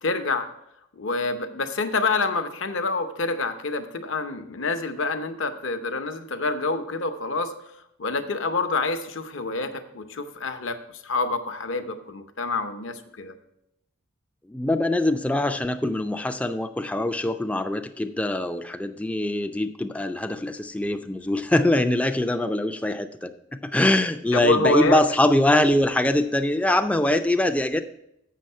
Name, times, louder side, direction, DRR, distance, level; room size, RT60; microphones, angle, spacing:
voice 1, 0.0-0.5 1.0-7.5 8.0-13.3 24.3-25.0, left 3 dB, 65° left, 7 dB, 0.7 m, -27 dB
voice 2, 14.5-27.8, left 1 dB, 5° left, 8 dB, 0.3 m, -23 dB
7.6 x 6.1 x 5.4 m, 0.79 s
head